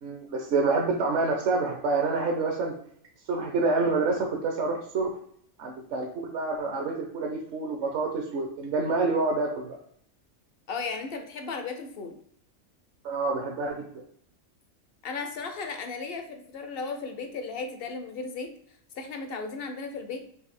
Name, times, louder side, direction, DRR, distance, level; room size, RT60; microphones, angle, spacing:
voice 1, 0.0-2.7 3.3-5.1 5.6-9.7 13.0-13.8, right 3 dB, 65° right, 1 dB, 0.9 m, -27 dB
voice 2, 10.7-12.2 15.0-18.5 18.9-20.3, left 4 dB, 60° left, 6 dB, 0.7 m, -35 dB
4.0 x 2.7 x 4.1 m, 0.66 s
omnidirectional pair, 1.4 m